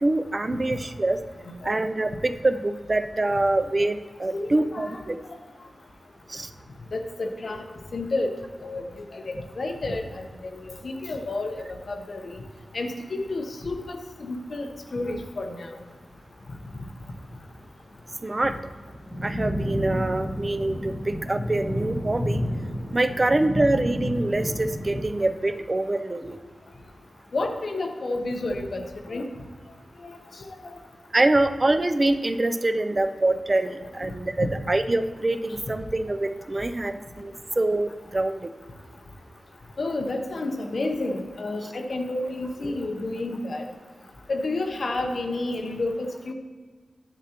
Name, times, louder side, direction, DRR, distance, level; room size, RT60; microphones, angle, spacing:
voice 1, 0.0-1.2 1.6-5.2 6.3-6.5 18.2-18.5 19.2-22.4 22.9-26.4 31.1-38.5, right 2 dB, 25° right, 9 dB, 0.4 m, -25 dB
voice 2, 1.4-1.8 4.3-5.0 6.9-7.6 7.9-8.9 9.1-12.4 12.7-14.7 14.9-15.7 18.5-18.6 27.3-29.2 30.0-30.2 30.5-30.7 34.4-34.5 39.8-43.6 44.3-46.3, left 2 dB, 55° left, 4 dB, 0.8 m, -30 dB
sound 1, 10.0-10.1 10.4-10.8 11.1-11.2 11.3-11.7 12.3-12.4 12.9-13.0 13.3-13.5 14.1-14.5 14.9-15.4 15.7-16.7 16.9-25.0, equal, 25° left, 2.0 m, -31 dB
9.9 x 7.6 x 2.9 m, 1.5 s
wide cardioid pair, 135°, 0 cm